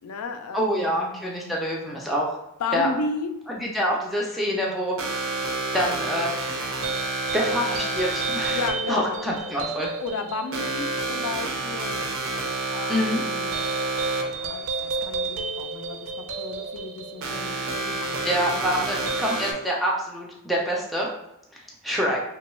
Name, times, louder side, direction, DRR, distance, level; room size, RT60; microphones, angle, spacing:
voice 1, 0.0-1.5 2.6-3.3 8.5-9.2 10.0-12.0 12.7-13.6 14.2-18.9, left 3 dB, 85° left, 7 dB, 0.4 m, -34 dB
voice 2, 0.5-2.3 2.7-2.9 3.5-5.0 5.7-6.3 7.3-8.6 8.9-9.9 12.9-13.2 18.2-21.1 21.5-22.2, equal, ahead, -3 dB, 0.3 m, -26 dB
sound 1, 5.0-19.5, right 3 dB, 60° right, 0.5 m, -29 dB
3.0 x 2.2 x 3.0 m, 0.88 s
head